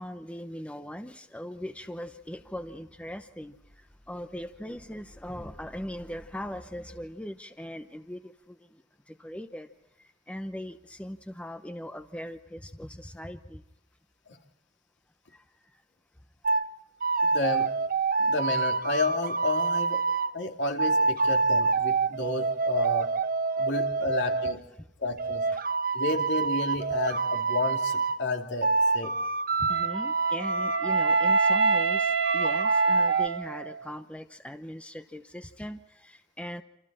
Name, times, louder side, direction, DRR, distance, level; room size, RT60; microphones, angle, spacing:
voice 1, 0.0-3.6 4.1-8.8 9.1-9.7 10.0-13.6 15.3-15.4 23.5-23.7 25.5-25.6 29.0-29.3 29.6-36.6, equal, 5° left, 8 dB, 0.8 m, -40 dB
sound 1, 16.4-16.7 17.0-20.3 20.8-24.5 25.2-28.2 28.6-31.8 32.2-33.3, right 3 dB, 50° right, 0.8 m, -26 dB
voice 2, 17.2-17.7 18.2-20.0 20.3-23.1 23.6-24.6 25.0-25.4 25.9-29.1, left 2 dB, 65° left, 3 dB, 2.8 m, -31 dB
Wind instrument woodwind instrument, 29.7-33.9, right 6 dB, 85° right, 1.1 m, -29 dB
27.5 x 27.5 x 4.3 m, 0.91 s
head